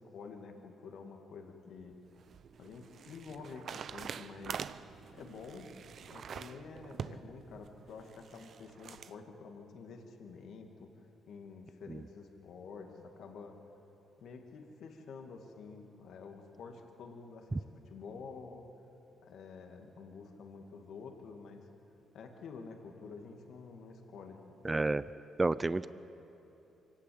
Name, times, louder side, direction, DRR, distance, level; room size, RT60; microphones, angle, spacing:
voice 1, 0.0-2.0 2.6-4.6 5.1-5.7 6.0-10.9 11.3-13.6 14.2-18.7 19.2-21.7 22.1-24.8, left 4 dB, 70° left, 3 dB, 2.3 m, -49 dB
sound 1, 1.8-9.1, right 7 dB, 55° right, 0.6 m, -46 dB
voice 2, 24.6-25.0 25.4-25.9, right 2 dB, 20° right, 15 dB, 0.5 m, -30 dB
24.0 x 17.5 x 8.8 m, 3.0 s
cardioid pair, 90°, 0 cm